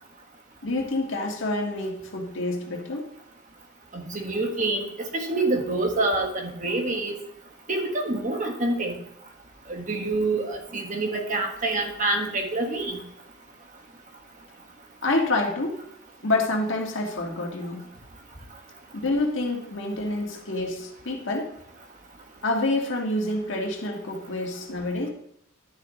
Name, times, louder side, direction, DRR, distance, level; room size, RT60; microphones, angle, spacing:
voice 1, 0.6-3.1 15.0-15.8 16.2-17.8 18.9-21.5 22.4-25.1, left 2 dB, 65° left, 0 dB, 1.9 m, -27 dB
voice 2, 3.9-7.1 7.7-9.0 9.7-13.0, right 2 dB, 40° right, 2 dB, 1.6 m, -27 dB
11.5 x 10.0 x 3.1 m, 0.72 s
head